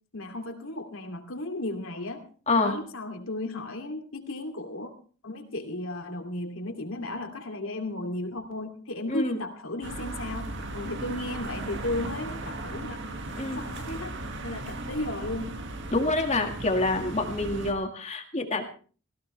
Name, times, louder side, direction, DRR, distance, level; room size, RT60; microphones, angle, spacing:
voice 1, 0.1-2.2 2.6-4.9 5.2-13.0 13.5-14.2 14.4-15.6, left 2 dB, 70° left, 4 dB, 2.7 m, -34 dB
voice 2, 9.1-9.4 13.4-13.7 15.9-18.6, left 2 dB, 30° left, 5 dB, 1.9 m, -27 dB
sound 1, 9.8-17.7, right 2 dB, 60° right, 1.9 m, -37 dB
18.0 x 17.5 x 3.3 m, 0.39 s
head